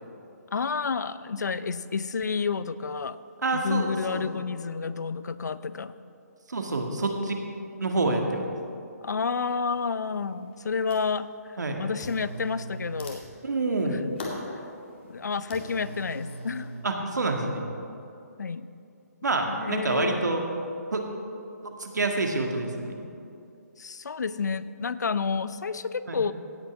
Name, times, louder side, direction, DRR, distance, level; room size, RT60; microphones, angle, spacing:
voice 1, 0.5-3.2 3.5-6.0 9.0-11.3 11.8-13.2 13.8-14.0 15.1-16.7 18.4-18.7 19.5-20.4 23.8-26.3, left 5 dB, 80° left, 15 dB, 0.5 m, -30 dB
voice 2, 3.4-4.2 6.5-7.4 7.8-8.5 11.6-11.8 13.4-14.0 16.8-17.7 19.2-20.4 20.9-21.1 21.6-23.0 26.1-26.2, right 3 dB, 85° right, 3 dB, 1.8 m, -27 dB
sound 1, 9.1-9.2 9.7-10.3 10.5-11.2 12.0-16.8, equal, 40° left, 2.2 m, -40 dB
17.0 x 5.8 x 6.0 m, 2.7 s
hypercardioid pair, 160°, 9 cm